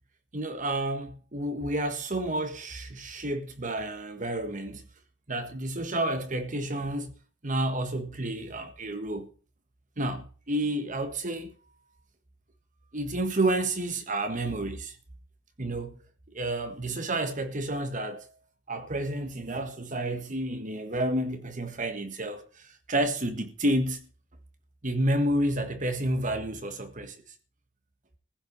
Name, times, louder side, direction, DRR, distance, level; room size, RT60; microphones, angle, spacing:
voice 1, 0.3-4.8 5.3-7.1 7.4-9.3 10.0-11.5 12.9-15.0 15.6-16.0 16.3-18.3 18.7-24.1 24.8-27.2, right 1 dB, 45° right, 1.6 m, -30 dB
15.5 x 5.8 x 9.6 m
head